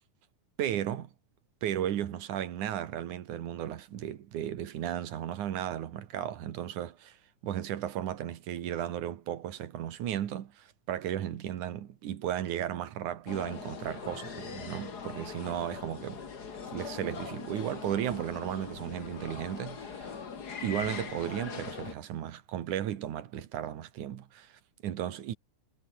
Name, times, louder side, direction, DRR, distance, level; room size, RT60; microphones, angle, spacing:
voice 1, 0.6-1.1 1.6-7.2 7.4-16.2 16.7-20.2 20.6-25.4, right 11 dB, 85° right, 3.0 m, -35 dB
sound 1, 13.3-21.9, left 6 dB, 35° left, 2.2 m, -41 dB
omnidirectional pair, 3.4 m